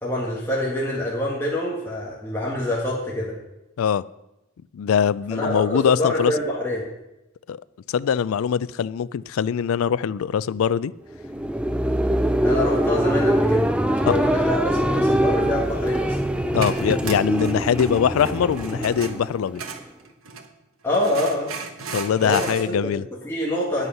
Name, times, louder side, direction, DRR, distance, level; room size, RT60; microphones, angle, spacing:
voice 1, 0.0-3.3 5.3-6.9 12.4-16.2 20.8-21.5 22.2-22.9 23.2-23.9, left 1 dB, 10° left, -5 dB, 1.6 m, -26 dB
voice 2, 4.7-6.3 7.5-7.6 7.9-10.9 14.1-14.2 16.5-19.6 21.9-23.0, left 7 dB, 80° left, 19 dB, 0.3 m, -22 dB
sound 1, 11.1-19.8, right 1 dB, 5° right, 0.4 m, -23 dB
sound 2, 16.4-20.5 20.9-22.7, right 5 dB, 80° right, 1.1 m, -36 dB
9.5 x 8.2 x 5.7 m, 0.94 s
head